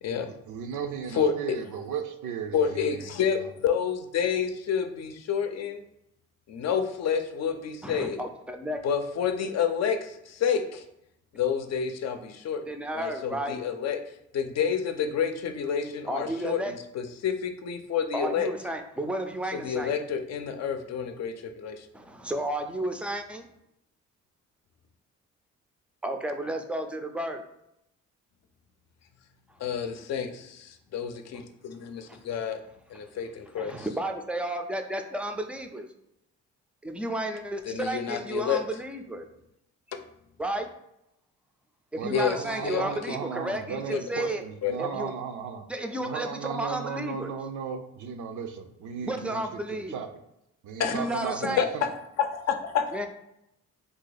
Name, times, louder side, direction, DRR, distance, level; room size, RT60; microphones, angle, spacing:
voice 1, 0.2-3.5 42.0-45.7 46.0-50.1 50.6-51.9, right 7 dB, 75° right, 6 dB, 0.5 m, -36 dB
voice 2, 1.1-1.6 2.5-5.8 6.5-8.2 8.8-10.8 11.3-12.6 12.9-14.0 14.3-18.5 19.5-21.9 29.6-32.6 32.9-33.9 37.7-38.6 42.1-43.2 43.9-44.0 44.6-44.8 50.8-51.0 51.4-51.7 52.2-53.1, left 7 dB, 60° left, 6 dB, 0.6 m, -29 dB
voice 3, 7.8-8.8 12.7-13.6 16.1-16.7 18.1-19.9 21.9-23.4 26.0-27.4 32.1-32.2 33.6-35.9 36.8-39.2 40.4-40.7 41.9-44.4 44.8-45.1 45.7-47.3 49.0-50.0 50.9-51.7 52.9-53.1, right 1 dB, 5° right, 5 dB, 0.4 m, -32 dB
2.8 x 2.7 x 3.9 m, 0.81 s
cardioid pair, 90°, 30 cm